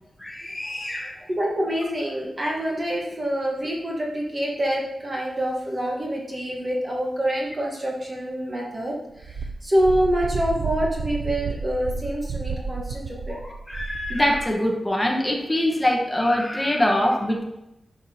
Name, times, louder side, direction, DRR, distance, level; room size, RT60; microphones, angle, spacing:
voice 1, 0.2-1.2 12.6-12.7 13.3-17.4, left 1 dB, 10° left, 0 dB, 1.1 m, -24 dB
voice 2, 1.3-13.4, equal, 25° right, -2 dB, 1.2 m, -26 dB
Wind, 9.2-14.5, right 4 dB, 80° right, 0.5 m, -31 dB
10.5 x 5.8 x 2.8 m, 0.90 s
wide cardioid pair, 165°, 0 cm